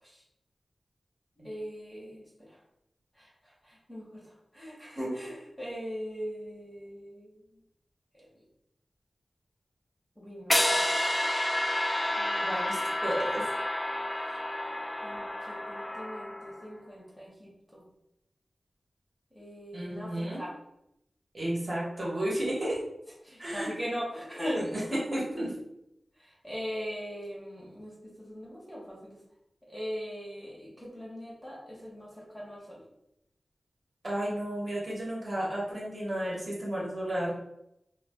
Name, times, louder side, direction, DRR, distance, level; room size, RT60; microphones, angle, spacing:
voice 1, 1.4-2.6 3.2-7.4 8.1-8.3 10.2-10.9 12.2-12.6 15.0-17.9 19.3-20.5 23.2-24.7 26.2-29.2 29.7-32.8, equal, 5° left, -6 dB, 0.8 m, -40 dB
sound 1, 10.5-16.6, left 1 dB, 25° left, 0.3 m, -30 dB
voice 2, 12.4-13.4 19.7-20.4 21.3-22.8 23.4-23.7 24.5-25.5 34.0-37.4, right 1 dB, 35° right, -6 dB, 1.0 m, -32 dB
2.3 x 2.1 x 3.4 m, 0.83 s
wide cardioid pair, 95°, 0 cm